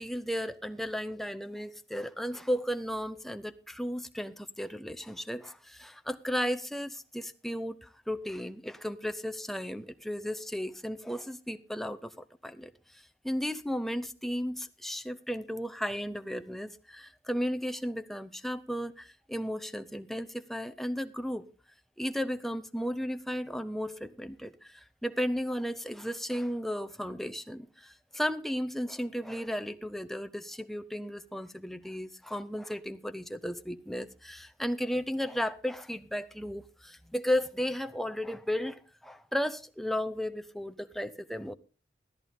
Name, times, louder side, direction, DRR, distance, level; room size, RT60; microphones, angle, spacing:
voice 1, 0.0-21.4 22.0-41.5, equal, ahead, 0.6 m, -34 dB
14.0 x 13.5 x 3.6 m
head